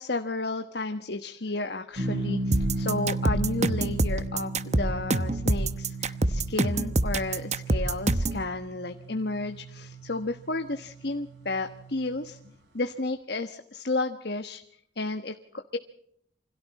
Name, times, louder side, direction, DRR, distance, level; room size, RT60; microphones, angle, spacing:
voice 1, 0.0-12.4 12.7-14.6 15.0-15.3 15.7-15.8, left 2 dB, 55° left, 7 dB, 1.3 m, -32 dB
sound 1, 2.0-12.5, right 2 dB, 65° right, 7.7 m, -36 dB
sound 2, 2.5-8.4, right 2 dB, 35° right, 1.0 m, -25 dB
28.5 x 25.5 x 4.2 m, 0.69 s
head